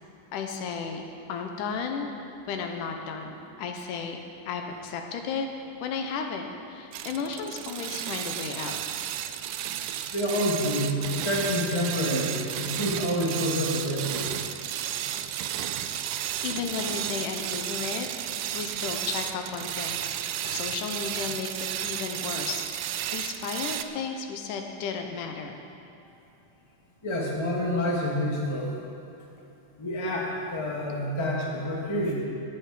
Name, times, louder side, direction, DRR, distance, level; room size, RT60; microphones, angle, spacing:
voice 1, 0.3-1.0 1.3-2.1 2.5-4.2 4.5-5.5 5.8-8.8 16.4-18.1 18.5-20.2 20.4-22.6 23.1-25.6, left 5 dB, 90° left, 4 dB, 2.4 m, -33 dB
sound 1, 6.9-23.8, right 11 dB, 90° right, 2.1 m, -33 dB
voice 2, 10.1-14.3 27.0-28.7 29.8-32.1, left 1 dB, 30° left, -3 dB, 0.5 m, -28 dB
12.5 x 9.2 x 4.9 m, 2.8 s
omnidirectional pair, 3.6 m